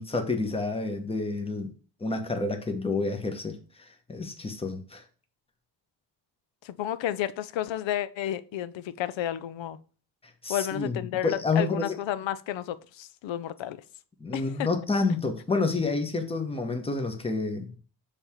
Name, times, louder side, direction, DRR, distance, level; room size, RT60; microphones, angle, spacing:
voice 1, 0.0-1.7 2.0-5.0 10.4-12.0 14.2-17.8, left 3 dB, 15° left, 0.9 m, -29 dB
voice 2, 6.6-9.8 10.5-13.8 14.3-14.5, left 12 dB, 85° left, 0.6 m, -31 dB
6.9 x 3.5 x 4.3 m
cardioid pair, 140°, 44 cm